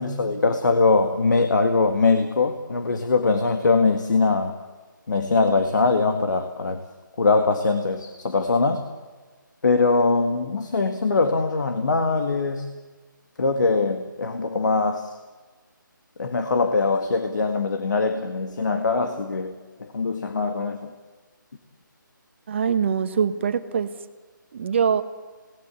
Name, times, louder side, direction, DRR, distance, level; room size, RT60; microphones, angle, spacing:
voice 1, 0.0-4.6 5.1-6.8 7.2-8.8 9.6-12.7 13.4-15.1 16.2-20.9, left 3 dB, 60° left, 7 dB, 1.9 m, -22 dB
voice 2, 22.5-23.9 24.5-25.0, right 7 dB, 35° right, 10 dB, 1.4 m, -23 dB
28.0 x 19.0 x 8.5 m, 1.4 s
figure-of-eight pair, 160°, 11 cm